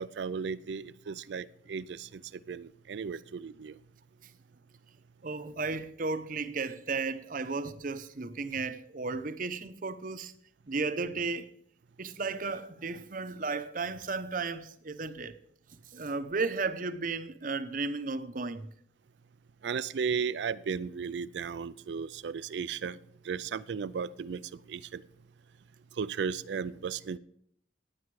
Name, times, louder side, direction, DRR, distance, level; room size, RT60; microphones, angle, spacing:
voice 1, 0.0-3.8 19.6-23.0 23.2-24.4 24.7-25.0 26.0-27.2, right 6 dB, 75° right, 0.4 m, -35 dB
voice 2, 5.2-10.3 10.7-11.5 12.0-15.3 15.9-18.7, right 4 dB, 50° right, 0.8 m, -34 dB
15.5 x 9.3 x 4.8 m
head